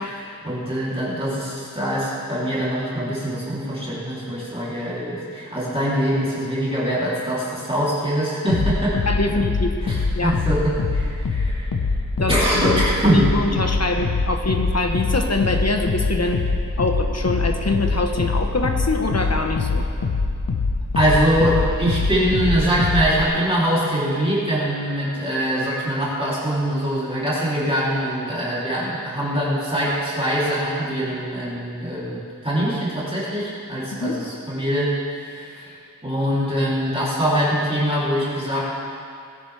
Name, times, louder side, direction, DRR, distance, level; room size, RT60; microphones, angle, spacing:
voice 1, 0.0-9.0 9.8-11.7 12.3-13.3 14.0-14.1 20.9-35.7 36.0-38.7, equal, 15° right, -8 dB, 3.1 m, -23 dB
sound 1, 8.5-23.3, left 3 dB, 75° left, 1.0 m, -24 dB
voice 2, 9.1-9.7 10.1-10.4 12.2-16.4 16.8-19.9 34.0-34.2, left 2 dB, 50° left, 4 dB, 1.2 m, -24 dB
18.5 x 10.0 x 3.4 m, 2.3 s
wide cardioid pair, 70°, 33 cm